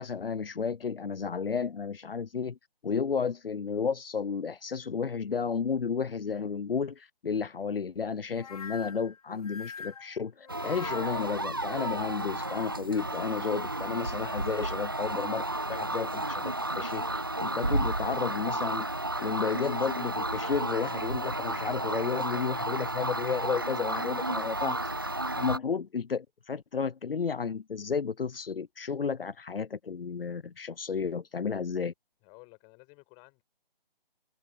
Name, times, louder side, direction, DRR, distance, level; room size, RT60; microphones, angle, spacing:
voice 1, 0.0-2.6 2.8-18.9 19.2-24.8 25.4-31.9, left 6 dB, 75° left, 0.7 m, -32 dB
sound 1, 8.4-11.5, left 6 dB, 40° left, 1.3 m, -44 dB
sound 2, 10.5-25.6, right 1 dB, 25° right, 0.4 m, -32 dB
voice 2, 32.2-33.4, left 32 dB, 15° left, 6.0 m, -55 dB
open air
figure-of-eight pair, 150°, 29 cm